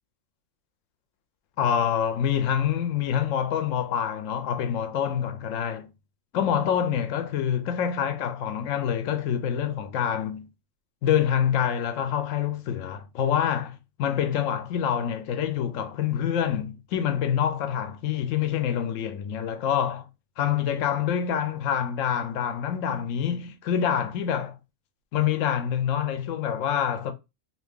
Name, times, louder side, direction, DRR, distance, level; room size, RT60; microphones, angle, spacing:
voice 1, 1.6-5.9 6.3-10.5 11.0-20.1 20.4-24.6 25.1-27.1, left 9 dB, 75° left, 0.9 m, -26 dB
2.8 x 2.6 x 3.5 m
omnidirectional pair, 1.4 m